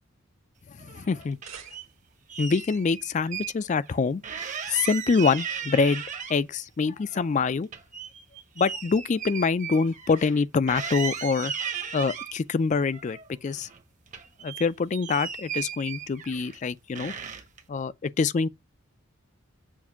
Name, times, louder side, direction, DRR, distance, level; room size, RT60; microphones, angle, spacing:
voice 1, 0.8-1.4 2.4-4.2 4.7-6.0 6.3-7.7 8.6-11.5 11.9-13.7 14.4-17.1 17.7-18.5, left 4 dB, 35° left, 0.3 m, -25 dB
sound 1, 0.8-1.9 2.3-3.5 3.8-3.9 4.2-6.6 7.0-10.4 10.7-12.3 12.9-13.8 14.1-16.6 17.0-17.6, right 7 dB, 35° right, 0.9 m, -36 dB
sound 2, 1.1-2.3, right 6 dB, 75° right, 1.7 m, -49 dB
7.2 x 2.6 x 5.7 m
head